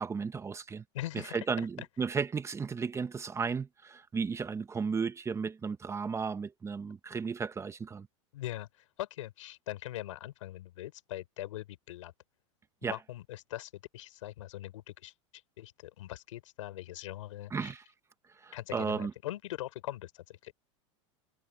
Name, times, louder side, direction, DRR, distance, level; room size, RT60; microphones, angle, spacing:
voice 1, 0.0-0.8 1.1-8.1 12.8-13.0 17.5-17.8 18.3-19.1, right 5 dB, 15° right, 1.1 m, -34 dB
voice 2, 0.9-1.4 8.3-8.7 9.0-12.1 12.8-15.1 15.6-17.7 18.5-20.5, left 14 dB, 85° left, 5.4 m, -41 dB
supercardioid pair, 125°, 16 cm